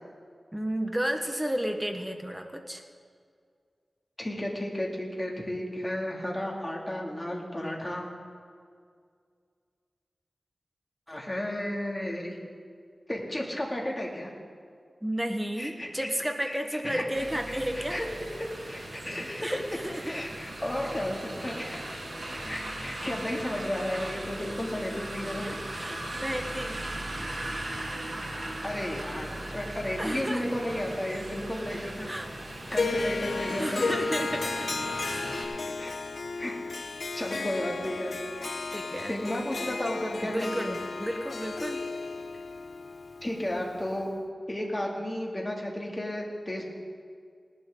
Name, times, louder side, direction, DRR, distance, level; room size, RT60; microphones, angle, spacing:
voice 1, 0.5-2.8 15.0-18.1 19.4-20.2 25.4-26.8 30.0-30.4 32.0-32.3 33.6-34.7 34.9-35.3 38.7-39.3 40.2-41.8, equal, 10° right, 4 dB, 1.3 m, -32 dB
voice 2, 4.2-8.0 11.1-12.4 13.1-14.3 15.6-16.1 16.5-16.6 16.8-17.1 17.5-18.1 18.4-19.5 20.0-21.8 22.2-25.4 28.6-32.1 32.7-33.9 35.7-35.9 36.4-36.6 37.1-38.2 39.1-40.8 43.2-44.1 44.5-46.7, left 1 dB, 20° left, -1 dB, 2.5 m, -33 dB
sound 1, 17.1-35.5, right 1 dB, 50° right, 3.0 m, -38 dB
Harp, 32.7-44.0, left 3 dB, 70° left, 0.6 m, -34 dB
19.0 x 11.5 x 3.8 m, 2.1 s
wide cardioid pair, 60°, 0 cm